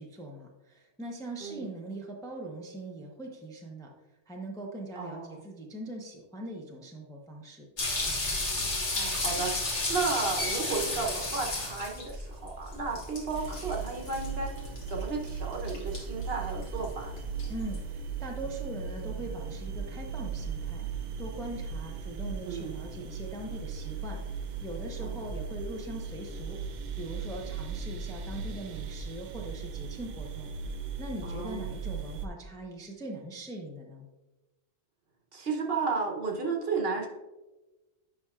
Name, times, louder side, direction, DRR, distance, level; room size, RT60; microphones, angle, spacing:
voice 1, 0.0-3.9 4.3-7.7 17.5-20.8 21.2-26.6 27.0-30.5 31.0-34.1, right 1 dB, 5° left, 0 dB, 0.6 m, -41 dB
voice 2, 5.0-5.4 8.9-9.5 9.9-14.5 14.9-17.1 22.5-22.7 25.0-25.2 31.2-31.7 35.3-37.1, right 4 dB, 50° right, 1 dB, 1.0 m, -33 dB
sound 1, 7.8-17.8, left 2 dB, 60° left, 1.9 m, -34 dB
sound 2, 13.3-32.3, right 5 dB, 70° right, 0.4 m, -38 dB
9.8 x 5.6 x 2.4 m, 1.1 s
omnidirectional pair, 1.4 m